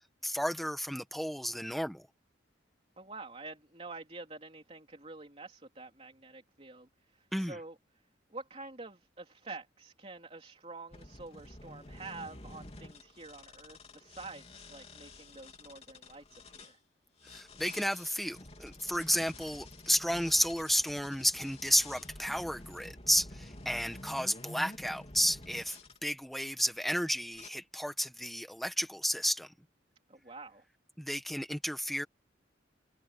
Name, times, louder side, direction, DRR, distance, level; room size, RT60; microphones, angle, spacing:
voice 1, 0.2-2.1 7.3-7.6 17.2-29.5 31.0-32.0, equal, ahead, 1.5 m, -32 dB
voice 2, 3.0-7.8 8.3-16.8 30.1-30.6, right 3 dB, 30° right, 3.6 m, -47 dB
granular synthesizer motor, 10.9-16.7 17.2-26.0 26.6-26.9 27.3-27.5, left 2 dB, 35° left, 3.4 m, -50 dB
head